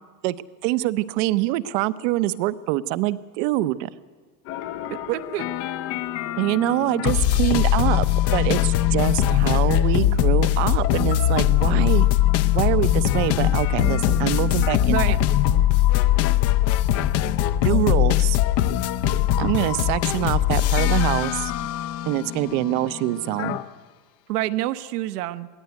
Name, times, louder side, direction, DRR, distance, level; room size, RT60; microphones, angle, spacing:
voice 1, 0.6-3.9 6.4-8.1 8.3-12.1 12.5-15.2 17.6-18.4 19.4-21.5 22.1-23.6, right 16 dB, 50° right, 15 dB, 0.9 m, -24 dB
sound 1, 4.5-23.6, left 12 dB, 30° left, 0.6 m, -21 dB
voice 2, 4.9-5.5 14.9-15.2 24.3-25.5, right 15 dB, 70° right, 12 dB, 1.1 m, -27 dB
22.0 x 16.0 x 9.4 m, 1.5 s
supercardioid pair, 145°, 49 cm